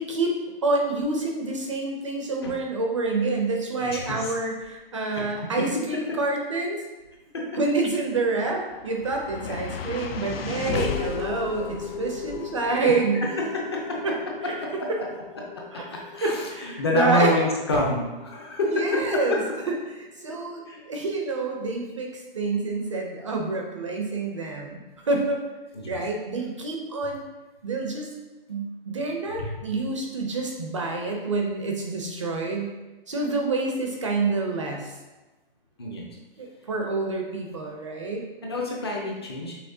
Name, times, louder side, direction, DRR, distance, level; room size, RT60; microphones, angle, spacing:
voice 1, 0.0-6.8 7.6-13.2 14.0-14.1 14.5-14.6 15.7-15.8 16.2-17.4 18.7-19.4 19.7-19.8 20.2-25.4 25.9-27.2 27.6-28.1 28.5-32.7 33.1-34.9 36.4-38.3, right 3 dB, 35° right, 1 dB, 0.4 m, -27 dB
voice 2, 3.8-4.3 5.1-5.2 7.3-7.5 9.4-9.6 12.6-12.7 13.2-14.0 14.6-14.9 15.7-19.4 20.7-20.8 25.7-26.0 29.4-29.6 35.8-36.1 38.4-39.6, left 2 dB, 25° left, -1 dB, 0.5 m, -27 dB
sound 1, 8.2-20.5, left 6 dB, 80° left, 0.6 m, -36 dB
5.7 x 3.3 x 2.6 m, 1.1 s
hypercardioid pair, 175°, 29 cm